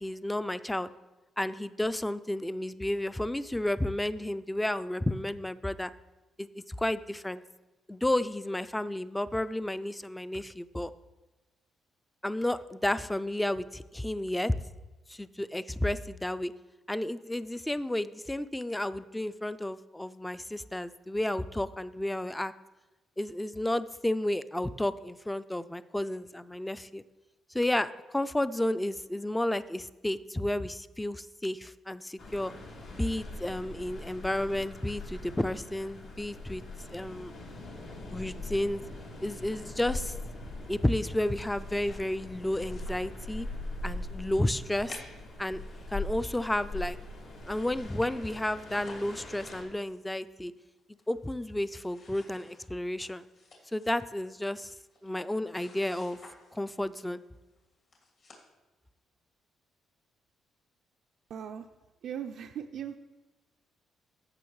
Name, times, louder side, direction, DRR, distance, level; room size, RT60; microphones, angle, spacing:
voice 1, 0.0-0.9 1.4-5.9 6.4-7.4 7.9-10.9 12.2-14.5 15.1-16.5 16.9-22.5 23.2-27.0 27.5-32.5 32.9-36.6 36.9-37.3 38.1-38.8 39.2-40.1 40.7-43.5 43.8-44.9 45.4-45.6 45.9-47.0 47.5-50.5 51.1-53.2 53.7-54.7 55.0-56.2 56.5-57.2, left 1 dB, 10° left, 14 dB, 0.3 m, -32 dB
sound 1, 32.2-49.6, left 2 dB, 80° left, 2.4 m, -41 dB
sound 2, 41.6-43.6 44.0-44.1 44.9-46.9 47.3-47.4 47.6-47.7 47.8-50.0 50.6-51.3 51.5-56.9 57.6-57.7 57.9-58.5, left 3 dB, 60° left, 2.6 m, -54 dB
voice 2, 61.3-61.7 62.0-63.0, right 8 dB, 70° right, 5 dB, 0.4 m, -38 dB
15.5 x 5.7 x 3.1 m, 1.1 s
cardioid pair, 90°, 0 cm